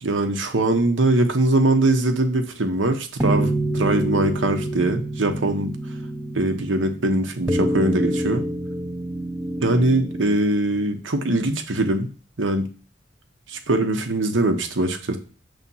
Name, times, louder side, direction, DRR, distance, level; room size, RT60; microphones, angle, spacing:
voice 1, 0.0-5.7 6.3-8.4 9.6-12.1 12.4-12.7 13.5-15.2, right 2 dB, 80° right, 6 dB, 1.1 m, -22 dB
sound 1, 3.2-10.4, right 1 dB, 10° right, 0.7 m, -27 dB
7.3 x 3.7 x 5.5 m, 0.37 s
head